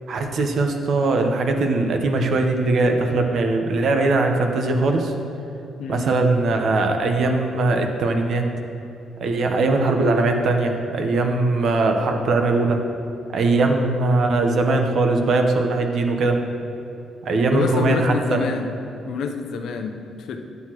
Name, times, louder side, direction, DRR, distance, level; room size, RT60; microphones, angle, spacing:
voice 1, 0.1-5.1 5.9-8.5 9.2-12.8 13.3-16.4 17.2-18.4, right 3 dB, 65° right, 4 dB, 0.9 m, -20 dB
voice 2, 17.5-18.7 19.0-20.4, left 5 dB, 75° left, 5 dB, 0.6 m, -27 dB
9.6 x 8.1 x 3.0 m, 2.8 s
cardioid pair, 90°, 0 cm